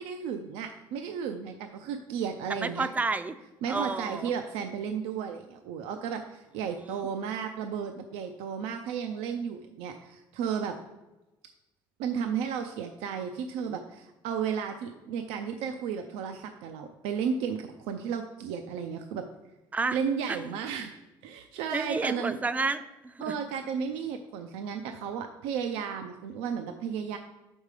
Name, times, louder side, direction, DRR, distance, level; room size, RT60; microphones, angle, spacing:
voice 1, 0.0-2.9 3.6-10.8 12.0-19.3 19.9-20.9 21.2-22.4 23.2-27.2, right 7 dB, 85° right, 5 dB, 0.5 m, -33 dB
voice 2, 2.5-3.4 3.7-4.3 6.8-7.1 19.7-20.0 20.3-20.4 21.7-23.3, right 3 dB, 15° right, 11 dB, 0.5 m, -31 dB
6.5 x 5.3 x 4.8 m, 1.0 s
cardioid pair, 110°, 10 cm